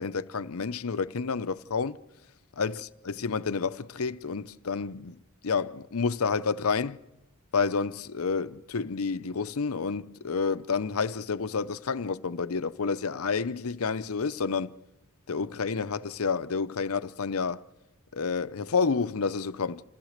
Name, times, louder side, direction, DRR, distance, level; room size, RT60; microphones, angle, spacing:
voice 1, 0.0-2.0 2.6-7.0 7.5-14.7 15.3-17.6 18.1-19.8, left 5 dB, 80° left, 0.7 m, -29 dB
27.5 x 15.5 x 6.5 m
head